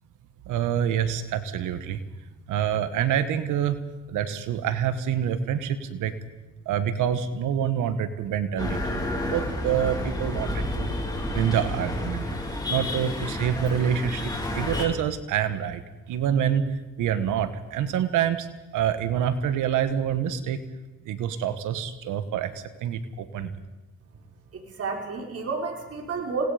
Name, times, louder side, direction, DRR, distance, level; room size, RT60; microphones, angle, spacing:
voice 1, 0.5-2.0 2.5-3.8 4.1-6.2 6.6-9.0 9.2-10.9 11.3-12.2 12.7-15.8 16.1-16.6 17.0-18.5 18.7-20.6 21.0-22.5 22.8-23.5, right 9 dB, 90° right, 11 dB, 1.6 m, -26 dB
sound 1, 8.6-14.9, left 1 dB, 15° left, 4.9 m, -30 dB
voice 2, 24.5-26.5, right 4 dB, 50° right, 1 dB, 4.7 m, -31 dB
28.5 x 19.0 x 5.1 m, 1.1 s
cardioid pair, 90°, 30 cm